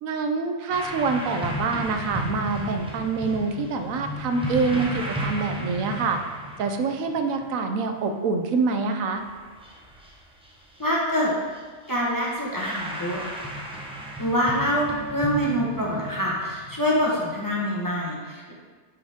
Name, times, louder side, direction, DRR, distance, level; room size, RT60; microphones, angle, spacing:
voice 1, 0.0-6.2 6.6-9.2, right 4 dB, 80° right, 6 dB, 1.0 m, -26 dB
sound 1, 0.7-8.0 8.7-8.8 9.2-10.9 11.2-11.6 11.8-18.0, right 1 dB, 5° right, 0.8 m, -35 dB
voice 2, 10.8-11.3 11.9-13.2 14.2-18.5, equal, 15° left, -4 dB, 1.1 m, -25 dB
9.3 x 4.8 x 3.6 m, 1.5 s
omnidirectional pair, 1.4 m